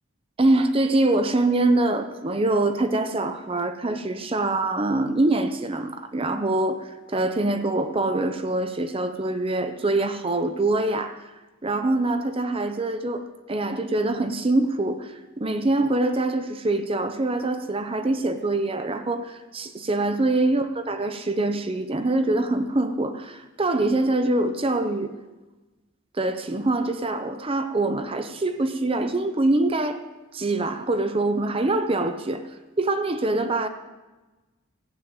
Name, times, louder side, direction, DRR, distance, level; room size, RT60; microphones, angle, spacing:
voice 1, 0.4-11.3 11.6-25.1 26.1-30.0 30.3-32.5 32.8-33.7, right 2 dB, 25° right, 9 dB, 0.7 m, -24 dB
14.5 x 7.5 x 9.0 m, 1.2 s
head